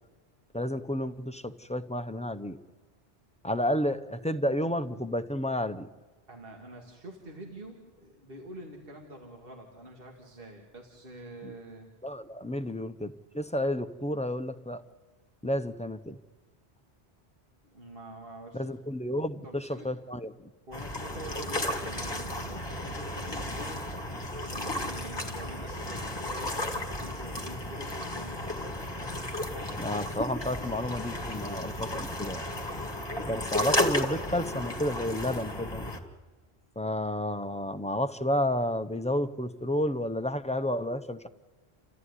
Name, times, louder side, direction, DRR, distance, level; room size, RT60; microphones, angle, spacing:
voice 1, 0.5-2.6 3.4-5.9 11.4-11.5 12.0-14.8 15.4-16.2 18.5-20.3 29.8-32.5 33.3-35.9 36.8-41.3, left 1 dB, 10° left, 10 dB, 0.6 m, -31 dB
voice 2, 6.3-11.9 17.7-18.6 19.4-19.9 20.7-28.4, right 1 dB, 60° right, 1 dB, 2.3 m, -46 dB
sound 1, 20.7-36.0, left 1 dB, 25° left, 2.1 m, -33 dB
29.5 x 14.5 x 9.7 m, 1.3 s
omnidirectional pair, 1.1 m